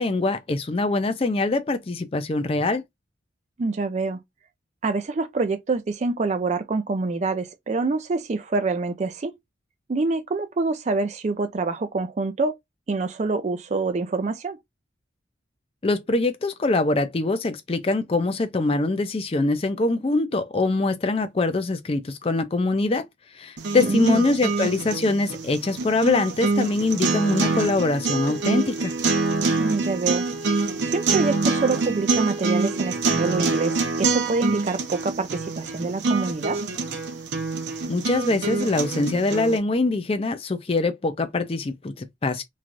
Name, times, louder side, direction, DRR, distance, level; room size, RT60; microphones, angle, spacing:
voice 1, 0.0-2.8 15.8-23.0 23.4-28.9 37.9-42.4, left 3 dB, 30° left, 0.4 m, -23 dB
voice 2, 3.6-4.2 4.8-9.3 9.9-12.5 12.9-14.6 23.8-24.2 29.6-30.3 30.8-36.6, right 3 dB, 35° right, 0.4 m, -26 dB
sound 1, 23.6-39.6, right 3 dB, 70° right, 0.7 m, -25 dB
3.1 x 2.2 x 2.5 m
head